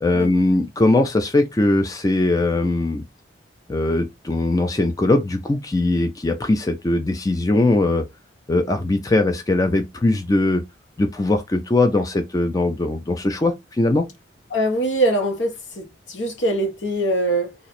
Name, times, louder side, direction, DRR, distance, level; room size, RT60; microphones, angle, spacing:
voice 1, 0.0-3.0 3.7-8.0 8.5-10.6 11.0-14.1, left 2 dB, 20° left, 0.3 m, -20 dB
voice 2, 14.5-17.6, right 1 dB, 75° left, 1.1 m, -23 dB
3.0 x 2.5 x 4.1 m
head